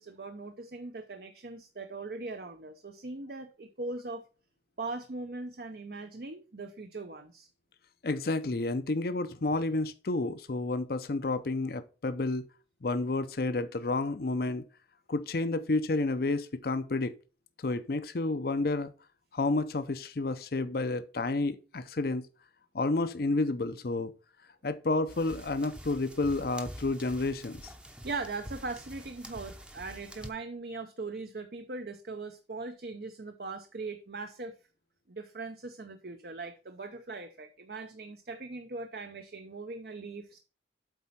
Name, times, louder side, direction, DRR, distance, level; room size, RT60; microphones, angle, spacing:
voice 1, 0.0-4.2 4.8-7.5 28.0-34.5 35.1-40.4, right 3 dB, 55° right, 0.7 m, -40 dB
voice 2, 8.0-12.4 12.8-14.6 15.1-17.1 17.6-18.9 19.3-22.2 22.7-24.1 24.6-27.7, left 2 dB, 55° left, 0.6 m, -30 dB
sound 1, 25.1-30.3, equal, 5° right, 0.7 m, -46 dB
8.1 x 4.2 x 5.7 m
head